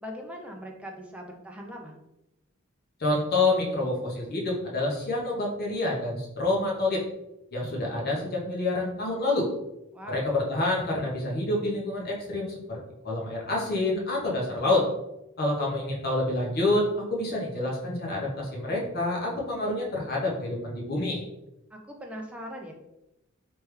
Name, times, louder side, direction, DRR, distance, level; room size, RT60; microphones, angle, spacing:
voice 1, 0.0-1.9 9.9-10.3 21.7-22.7, equal, 5° right, 1 dB, 0.6 m, -40 dB
voice 2, 3.0-7.0 7.5-9.5 10.1-12.8 13.0-14.8 15.4-21.2, left 2 dB, 50° left, -2 dB, 1.0 m, -27 dB
3.3 x 3.3 x 3.2 m, 0.92 s
head